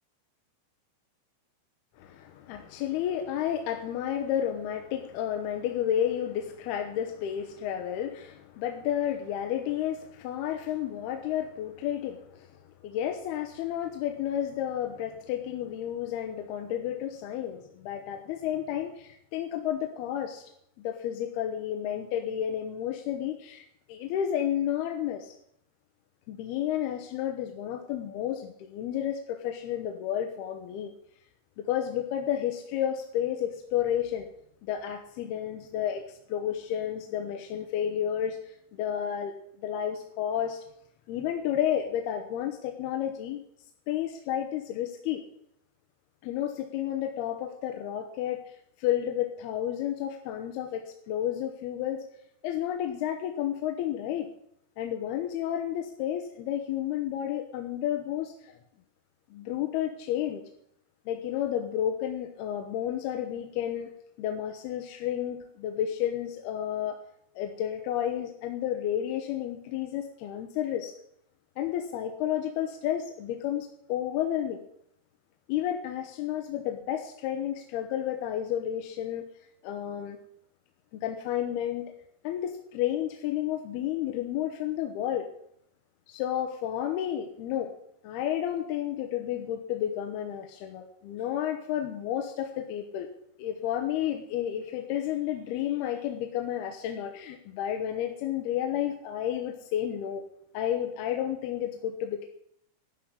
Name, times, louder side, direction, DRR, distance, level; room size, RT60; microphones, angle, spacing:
voice 1, 2.0-20.4 20.8-25.3 26.3-30.9 31.6-34.3 34.6-39.4 39.6-40.6 41.1-43.4 43.9-45.2 46.2-52.0 52.4-54.3 54.8-58.6 59.3-60.4 61.1-67.0 67.4-70.9 71.6-74.6 75.5-79.3 79.6-80.2 80.9-81.9 82.2-85.3 86.1-87.7 88.0-93.1 93.4-100.2 100.5-102.2, left 10 dB, 75° left, 5 dB, 2.6 m, -31 dB
12.5 x 6.4 x 9.8 m, 0.72 s
omnidirectional pair, 5.2 m